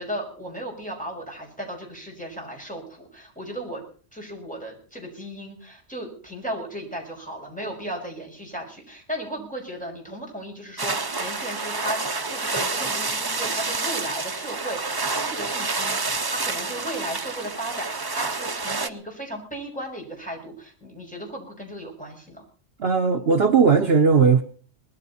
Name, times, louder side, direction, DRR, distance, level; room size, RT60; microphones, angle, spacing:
voice 1, 0.0-3.8 4.1-22.4, right 1 dB, 5° left, 0 dB, 5.9 m, -35 dB
sound 1, 10.8-18.9, right 3 dB, 25° right, 0.7 m, -28 dB
voice 2, 22.8-24.4, right 5 dB, 60° right, 6 dB, 1.2 m, -17 dB
20.0 x 14.0 x 4.3 m, 0.42 s
omnidirectional pair, 1.2 m